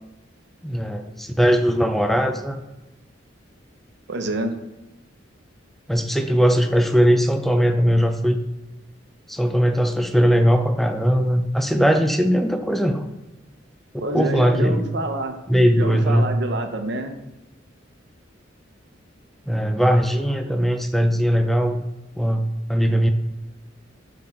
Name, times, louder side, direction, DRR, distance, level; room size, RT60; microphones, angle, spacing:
voice 1, 0.6-2.6 5.9-8.4 9.3-13.1 14.1-14.8 15.5-16.3 19.5-21.8 22.2-23.1, equal, ahead, 6 dB, 0.4 m, -19 dB
voice 2, 4.1-4.5 14.0-15.3 15.8-17.2, right 2 dB, 65° right, 6 dB, 0.9 m, -27 dB
7.4 x 3.9 x 4.4 m, 1.0 s
head